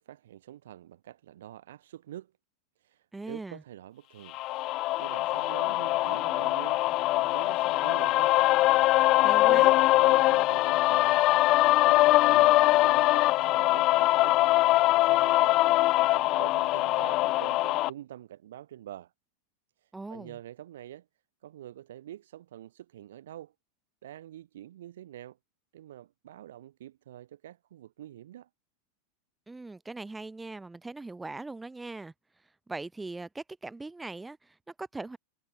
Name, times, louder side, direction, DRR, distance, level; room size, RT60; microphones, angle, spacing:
voice 1, 0.0-2.3 2.8-4.4 5.0-6.8 7.1-8.4 9.0-14.4 15.0-19.1 19.8-21.1 21.4-23.5 24.0-25.4 25.7-28.5, right 12 dB, 90° right, 6.5 m, -46 dB
voice 2, 3.1-3.6 9.2-9.7 19.9-20.4 29.5-32.1 32.7-35.2, right 3 dB, 10° right, 3.9 m, -40 dB
sound 1, 4.3-17.9, left 18 dB, 45° left, 0.6 m, -23 dB
supercardioid pair, 140°, 0 cm